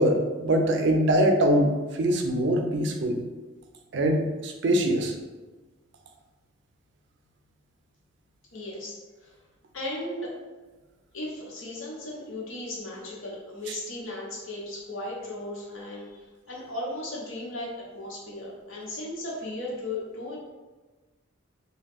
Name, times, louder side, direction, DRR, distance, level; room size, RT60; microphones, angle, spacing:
voice 1, 0.0-3.2 3.9-5.1 13.7-13.8, right 1 dB, 60° right, 4 dB, 0.4 m, -23 dB
voice 2, 8.5-9.4 9.7-10.3 11.1-20.4, left 1 dB, 85° left, -4 dB, 1.0 m, -36 dB
3.0 x 2.2 x 3.5 m, 1.2 s
head